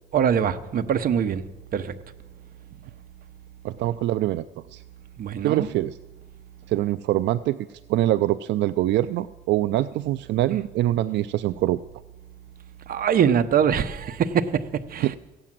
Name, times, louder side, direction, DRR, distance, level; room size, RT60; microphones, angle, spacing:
voice 1, 0.1-1.4 1.7-1.9 5.2-5.7 12.9-15.2, right 8 dB, 50° right, 0.9 m, -23 dB
voice 2, 3.6-4.5 4.7-4.8 5.4-6.0 6.7-7.6 7.9-11.8 15.0-15.2, right 14 dB, 75° right, 0.4 m, -24 dB
15.5 x 8.7 x 7.5 m
cardioid pair, 115°, 18 cm